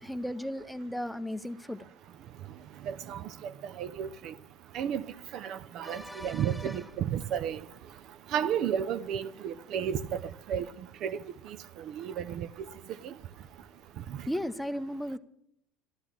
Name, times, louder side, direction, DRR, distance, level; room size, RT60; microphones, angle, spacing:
voice 1, 0.0-1.8 5.8-6.9 14.3-15.2, equal, 5° left, 0.7 m, -36 dB
voice 2, 2.8-4.3 4.7-5.0 5.3-7.6 8.3-10.0 10.5-10.7 11.0-11.2 11.9-12.5 13.0-13.1, right 9 dB, 50° right, 0.6 m, -32 dB
12.0 x 12.0 x 7.2 m
figure-of-eight pair, 70°, 0 cm